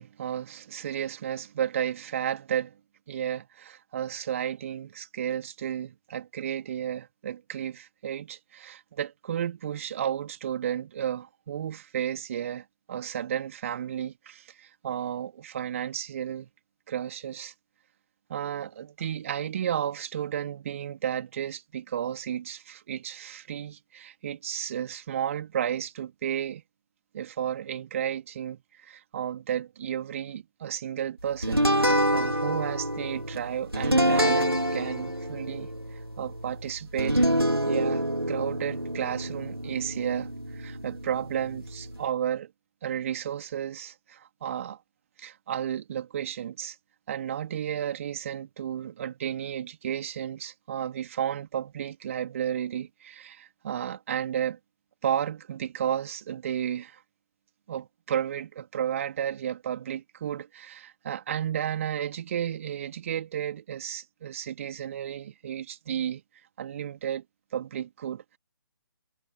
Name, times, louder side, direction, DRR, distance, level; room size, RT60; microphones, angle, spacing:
voice 1, 0.0-2.7 3.1-16.5 16.9-17.5 18.3-26.6 27.1-37.3 37.7-42.5 42.8-44.8 45.2-46.7 47.1-54.6 55.0-57.0 57.7-66.2 66.6-67.2 67.5-68.4, right 9 dB, 35° right, 3.4 m, -33 dB
sound 1, 31.4-42.1, equal, 85° right, 4.1 m, -27 dB
figure-of-eight pair, 140°, 12 cm